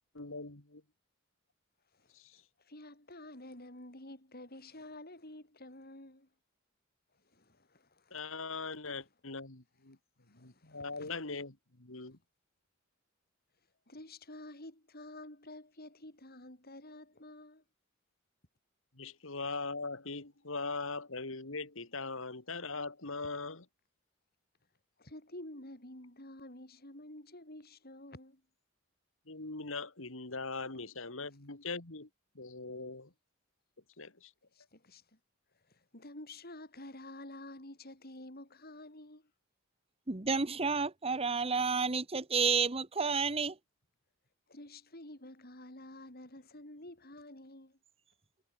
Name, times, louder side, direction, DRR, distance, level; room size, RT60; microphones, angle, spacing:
voice 1, 0.1-0.8 2.1-2.4 8.1-10.0 10.3-12.2 19.0-23.6 29.3-32.1 32.3-33.1 34.0-34.3, left 3 dB, 70° left, 2.5 m, -41 dB
voice 2, 1.9-6.3 7.1-8.2 10.3-11.1 13.9-17.6 25.0-28.4 34.5-35.2 35.5-39.3 44.5-47.8, left 1 dB, 50° left, 7.3 m, -50 dB
voice 3, 40.1-43.5, right 5 dB, 30° right, 1.2 m, -30 dB
head